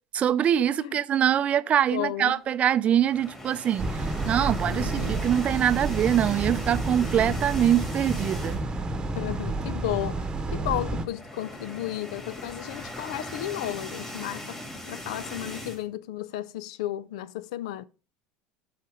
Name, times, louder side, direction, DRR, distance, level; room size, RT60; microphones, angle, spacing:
voice 1, 0.1-3.9 4.3-8.6, right 10 dB, 40° right, 0.5 m, -24 dB
voice 2, 1.9-2.4 4.7-5.2 7.1-7.4 9.2-10.2 10.5-14.6 14.9-17.8, left 13 dB, 80° left, 0.4 m, -33 dB
sound 1, 3.0-8.8 9.2-9.4 9.6-9.7 10.8-15.8, left 1 dB, 15° left, 2.6 m, -40 dB
sound 2, 3.8-11.1, right 2 dB, 20° right, 1.0 m, -30 dB
7.7 x 4.3 x 5.0 m
supercardioid pair, 90°, 3 cm